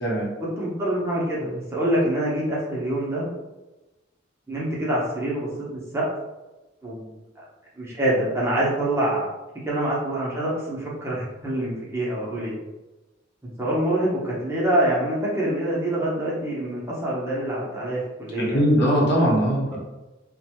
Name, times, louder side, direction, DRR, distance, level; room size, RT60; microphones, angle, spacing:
voice 1, 0.4-3.3 4.5-6.1 6.8-7.1 7.8-9.3 9.6-12.5 13.6-18.6, right 1 dB, 15° right, -6 dB, 0.7 m, -25 dB
voice 2, 18.5-19.8, equal, 60° left, -4 dB, 0.9 m, -20 dB
2.5 x 2.2 x 2.8 m, 1.1 s
head